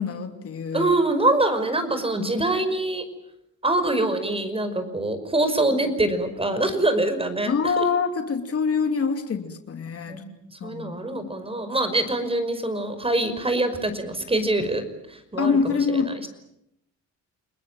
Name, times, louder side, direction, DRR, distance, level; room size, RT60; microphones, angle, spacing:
voice 1, 0.0-0.9 7.5-10.2 10.6-11.2 15.4-16.3, left 5 dB, 50° left, 6 dB, 2.8 m, -25 dB
voice 2, 0.7-3.1 3.6-7.8 10.1-14.8 15.1-16.3, right 2 dB, 20° right, 10 dB, 5.6 m, -24 dB
30.0 x 20.5 x 9.2 m, 0.80 s
cardioid pair, 90°, 30 cm